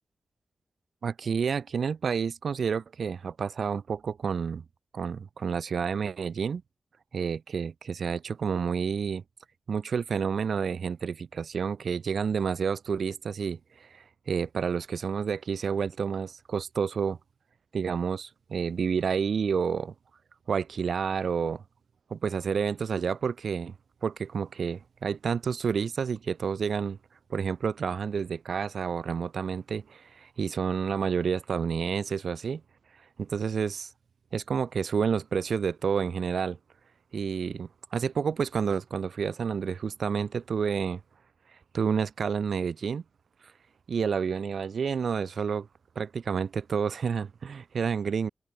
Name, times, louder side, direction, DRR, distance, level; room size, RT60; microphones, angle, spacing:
voice 1, 1.0-4.6 4.9-6.6 7.1-9.2 9.7-17.2 17.7-19.9 20.5-21.6 22.1-23.7 24.0-27.0 27.3-32.6 33.2-33.9 34.3-36.6 37.1-41.0 41.7-43.0 43.9-45.7 46.0-48.3, right 6 dB, 75° right, 4.1 m, -29 dB
wide cardioid pair, 90°, 0 cm